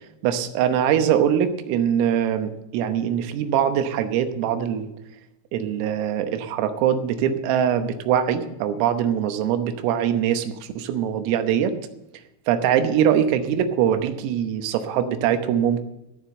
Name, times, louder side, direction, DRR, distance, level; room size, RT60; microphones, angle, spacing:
voice 1, 0.2-4.9 5.5-11.8 12.5-15.8, right 9 dB, 90° right, 8 dB, 3.7 m, -22 dB
14.0 x 7.3 x 7.8 m, 0.90 s
omnidirectional pair, 5.8 m